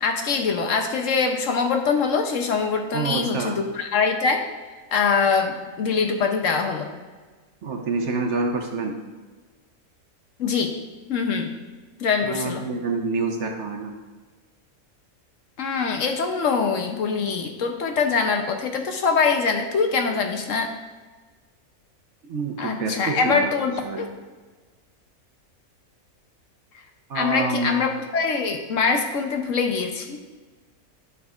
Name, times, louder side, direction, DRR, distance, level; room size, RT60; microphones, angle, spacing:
voice 1, 0.0-4.4 4.9-6.9 10.4-10.7 11.1-11.5 12.0-12.6 15.6-20.7 22.6-24.1 27.1-30.2, left 5 dB, 65° left, 4 dB, 1.0 m, -23 dB
voice 2, 2.9-3.6 7.6-9.0 12.2-13.9 22.2-23.5 23.8-24.1 27.1-27.8, right 4 dB, 60° right, 3 dB, 1.0 m, -27 dB
11.0 x 6.1 x 2.4 m, 1.4 s
omnidirectional pair, 1.5 m